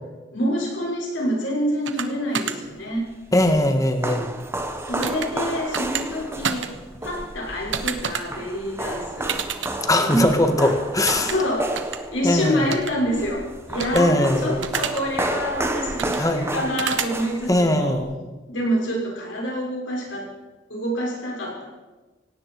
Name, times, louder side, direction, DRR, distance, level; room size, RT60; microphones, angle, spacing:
voice 1, 0.3-3.1 4.8-6.7 7.0-9.4 10.0-10.3 10.6-10.7 11.2-18.0 18.5-20.3 20.7-21.6, equal, 85° left, -2 dB, 6.1 m, -27 dB
sound 1, 1.9-2.1 2.3-2.5 5.0-5.3 5.7-6.0 6.4-6.7 7.7-8.2 9.3-9.7 11.1-11.3 11.8-12.0 12.7-12.9 13.8-14.0 14.6-15.0 16.0-16.2 16.8-17.1, right 7 dB, 75° right, 1.2 m, -27 dB
sound 2, 3.0-18.0, right 1 dB, 15° right, 1.1 m, -32 dB
voice 2, 3.3-4.3 9.8-11.3 12.2-12.7 13.9-14.6 16.2-16.5 17.5-18.1, left 1 dB, 20° left, 6 dB, 1.7 m, -20 dB
18.0 x 17.0 x 4.8 m, 1.2 s
head